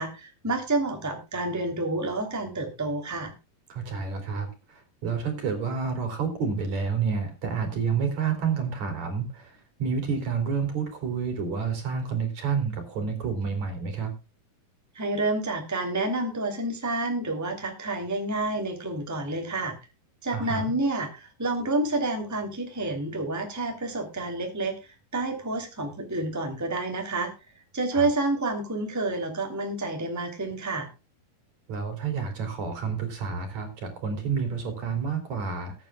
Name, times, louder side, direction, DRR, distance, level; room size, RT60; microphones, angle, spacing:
voice 1, 0.0-3.3 14.9-19.7 20.2-24.8 25.1-27.3 27.7-30.9, right 2 dB, 5° right, 3 dB, 2.7 m, -29 dB
voice 2, 3.7-14.1 20.3-20.6 27.9-28.1 31.7-35.7, right 6 dB, 55° right, 6 dB, 4.5 m, -29 dB
21.0 x 9.5 x 2.3 m, 0.29 s
omnidirectional pair, 3.9 m